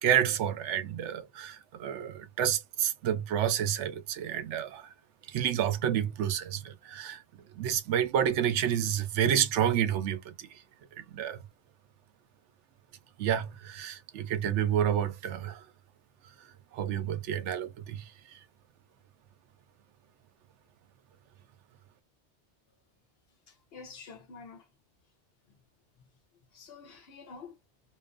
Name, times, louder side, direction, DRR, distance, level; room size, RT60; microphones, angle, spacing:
voice 1, 0.0-4.9 5.3-7.2 7.5-10.5 11.0-11.4 13.2-15.6 16.7-18.0, right 10 dB, 85° right, 0.9 m, -29 dB
voice 2, 23.5-24.7 25.5-25.6 26.0-26.1 26.5-27.6, left 5 dB, 60° left, 1.0 m, -48 dB
2.7 x 2.4 x 2.4 m
omnidirectional pair, 1.2 m